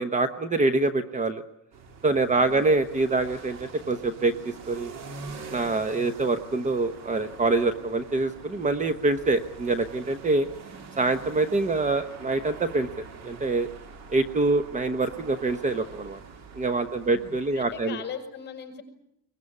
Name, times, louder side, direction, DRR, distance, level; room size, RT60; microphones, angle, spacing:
voice 1, 0.0-1.4 2.0-4.9 5.5-10.5 11.0-12.9 13.2-13.7 14.1-16.2 16.5-18.0, right 3 dB, 25° right, 10 dB, 0.9 m, -25 dB
sound 1, 1.7-17.9, right 4 dB, 55° right, 2.8 m, -44 dB
voice 2, 2.3-2.7 17.0-18.8, left 7 dB, 30° left, 4 dB, 6.8 m, -40 dB
22.5 x 20.5 x 9.7 m, 0.80 s
cardioid pair, 155°, 32 cm